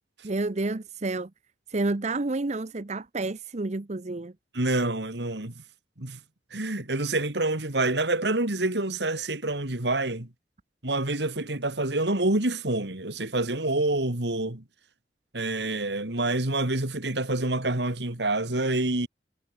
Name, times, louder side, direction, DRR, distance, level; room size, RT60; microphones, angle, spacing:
voice 1, 0.2-1.3 1.7-4.3, right 2 dB, 40° right, 0.8 m, -29 dB
voice 2, 4.5-5.6 6.0-6.2 6.5-10.3 10.8-14.6 15.3-19.1, right 2 dB, 70° right, 2.8 m, -27 dB
head